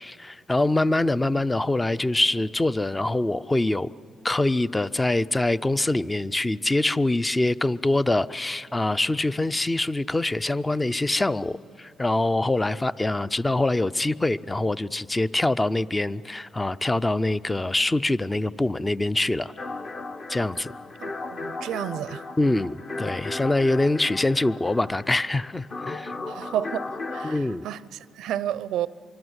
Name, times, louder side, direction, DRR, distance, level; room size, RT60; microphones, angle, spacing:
voice 1, 0.0-3.9 4.2-19.5 20.3-20.7 22.4-26.2 27.2-27.6, left 2 dB, 15° left, 0.5 m, -24 dB
sound 1, 19.6-27.4, left 3 dB, 45° left, 1.2 m, -36 dB
voice 2, 21.0-22.2 26.3-26.8 27.1-28.9, right 11 dB, 85° right, 0.5 m, -31 dB
25.0 x 23.5 x 8.0 m
cardioid pair, 90°, 0 cm